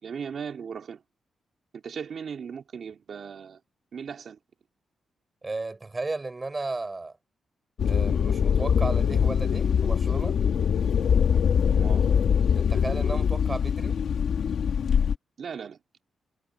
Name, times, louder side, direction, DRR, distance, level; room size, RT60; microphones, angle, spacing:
voice 1, 0.0-1.0 1.7-3.6 3.9-4.4 11.7-12.1 15.4-15.8, right 6 dB, 50° right, 3.5 m, -37 dB
voice 2, 5.4-7.2 7.8-10.4 12.5-14.0, right 3 dB, 20° right, 6.4 m, -34 dB
sound 1, 7.8-15.1, left 7 dB, 60° left, 1.8 m, -23 dB
wide cardioid pair, 160°, 0 cm